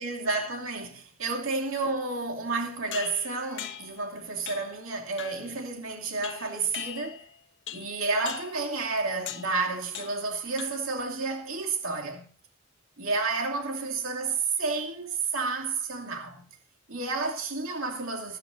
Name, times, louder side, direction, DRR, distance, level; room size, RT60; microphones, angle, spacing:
voice 1, 0.0-7.3 7.7-12.3 13.0-16.5 16.9-18.4, right 3 dB, 70° right, 2.8 m, -31 dB
sound 1, 2.9-4.0 4.5-4.8 5.2-5.5 6.2-7.3 7.7-8.0 8.3-8.6 9.3-9.6 9.9-10.3 10.6-11.0, left 10 dB, 60° left, 1.1 m, -40 dB
21.0 x 10.0 x 2.7 m
head